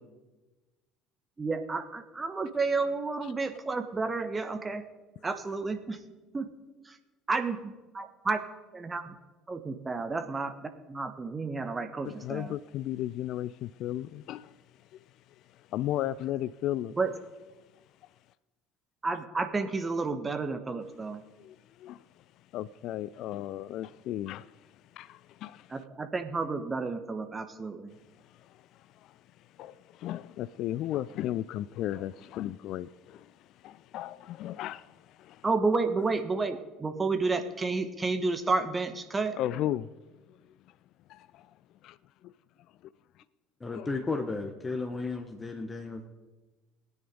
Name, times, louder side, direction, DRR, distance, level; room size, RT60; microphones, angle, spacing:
voice 1, 1.4-4.8 5.2-6.0 6.3-6.5 6.9-7.0 7.3-8.4 8.7-9.1 9.5-10.6 10.9-12.5 17.0-17.1 19.0-21.2 25.7-27.9 35.4-39.3, right 3 dB, 25° right, 1.4 m, -31 dB
voice 2, 12.0-14.6 15.7-16.9 21.4-22.0 22.5-24.6 24.9-25.7 28.4-28.6 29.0-29.2 29.6-33.3 33.6-35.5 39.3-39.9 41.1-41.5 41.8-42.0 42.2-42.3 43.7-43.9, left 13 dB, 55° left, 0.3 m, -35 dB
voice 3, 43.6-46.1, left 3 dB, 20° left, 1.3 m, -34 dB
18.0 x 9.6 x 5.3 m
figure-of-eight pair, 60°, 0 cm